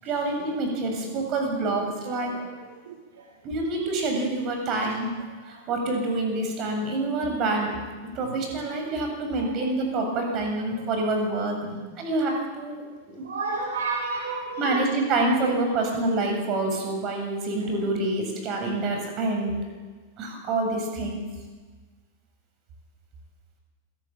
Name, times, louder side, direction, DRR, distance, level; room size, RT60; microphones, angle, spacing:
voice 1, 0.0-2.3 3.4-5.1 5.5-7.8 8.1-11.6 12.0-13.3 14.6-19.6 20.2-21.2, right 2 dB, 35° right, 2 dB, 7.9 m, -27 dB
voice 2, 2.2-2.9 5.5-5.6 9.4-9.5 10.7-10.9 11.6-11.8 13.2-14.9, right 4 dB, 65° right, 1 dB, 3.1 m, -32 dB
28.0 x 18.5 x 7.5 m, 1.4 s
figure-of-eight pair, 90°, 0 cm